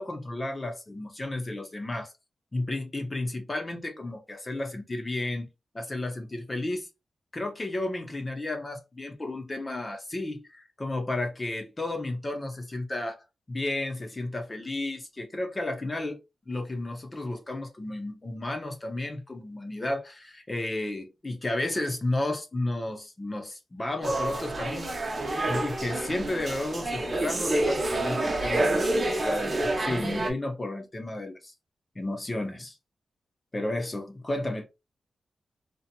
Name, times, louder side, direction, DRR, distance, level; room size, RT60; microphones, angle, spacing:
voice 1, 0.0-2.1 2.5-6.9 7.3-13.2 13.5-16.2 16.5-25.0 25.5-31.5 31.9-32.8 33.5-34.7, left 2 dB, 30° left, 0.9 m, -32 dB
sound 1, 24.0-30.3, right 2 dB, 40° right, 0.9 m, -28 dB
2.9 x 2.4 x 2.2 m
cardioid pair, 70°, 0 cm